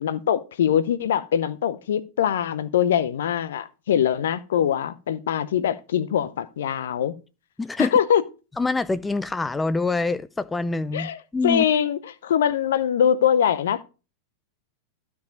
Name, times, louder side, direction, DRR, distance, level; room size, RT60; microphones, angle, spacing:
voice 1, 0.0-7.1 7.8-8.2 10.9-13.8, left 9 dB, 60° left, 0.7 m, -23 dB
voice 2, 7.6-7.9 8.6-11.6, left 3 dB, 10° left, 0.4 m, -25 dB
12.5 x 4.8 x 5.1 m
figure-of-eight pair, 90°, 0 cm